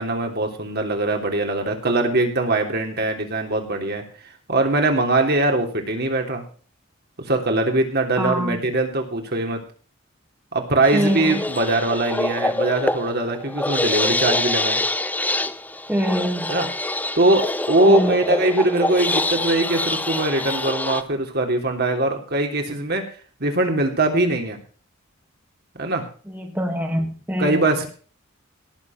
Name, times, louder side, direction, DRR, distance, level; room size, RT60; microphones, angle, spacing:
voice 1, 0.0-4.0 4.5-6.4 7.3-9.6 10.5-14.8 16.5-16.7 17.2-23.0 23.4-24.6 25.8-26.0 27.4-27.9, right 2 dB, 50° right, 3 dB, 3.2 m, -21 dB
voice 2, 8.2-8.6 10.9-11.4 15.9-16.5 17.9-18.1 26.3-27.7, equal, 10° right, 2 dB, 1.9 m, -24 dB
sound 1, 10.8-21.0, left 2 dB, 10° left, 0.7 m, -25 dB
18.0 x 7.3 x 5.7 m, 0.40 s
head